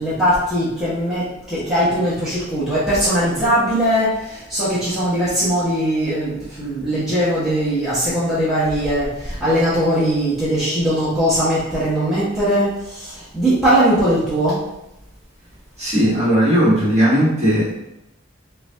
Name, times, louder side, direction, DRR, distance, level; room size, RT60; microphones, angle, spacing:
voice 1, 0.0-14.6, equal, ahead, -13 dB, 1.0 m, -20 dB
voice 2, 15.8-17.7, equal, 35° right, -9 dB, 1.4 m, -17 dB
5.6 x 2.4 x 2.2 m, 0.86 s
head